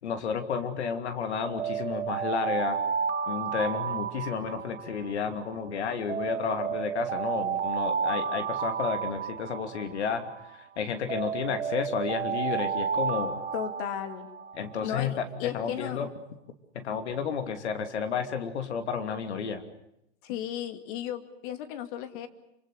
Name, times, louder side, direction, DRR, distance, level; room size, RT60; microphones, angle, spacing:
voice 1, 0.0-2.8 3.3-10.2 10.8-13.4 14.5-16.1 16.7-19.6, left 6 dB, 70° left, 7 dB, 3.0 m, -31 dB
Alarm, 1.4-5.6 6.1-10.6 11.1-14.9, right 7 dB, 70° right, 1.8 m, -32 dB
voice 2, 13.5-14.3 14.8-16.1 20.2-22.3, left 10 dB, 45° left, 8 dB, 2.5 m, -35 dB
27.0 x 26.0 x 6.7 m, 0.80 s
hypercardioid pair, 115°, 35 cm